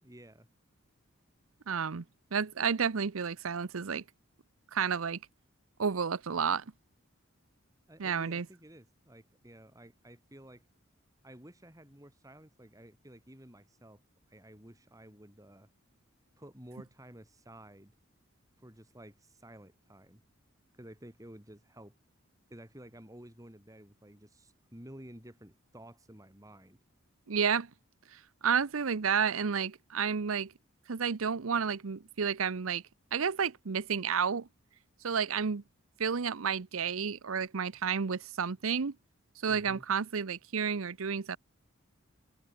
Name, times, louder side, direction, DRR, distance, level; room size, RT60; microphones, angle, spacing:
voice 1, 0.0-0.5 7.9-10.6 11.2-14.0 14.3-15.7 16.4-17.9 18.6-20.2 20.7-22.0 22.5-26.8 39.5-39.8, right 1 dB, 15° right, 3.9 m, -52 dB
voice 2, 1.7-2.0 2.3-4.0 4.7-5.2 5.8-6.6 8.0-8.5 27.3-27.7 28.1-30.5 30.9-32.8 33.1-34.5 35.0-35.6 36.0-39.0 39.4-41.4, right 6 dB, 80° right, 0.7 m, -31 dB
open air
head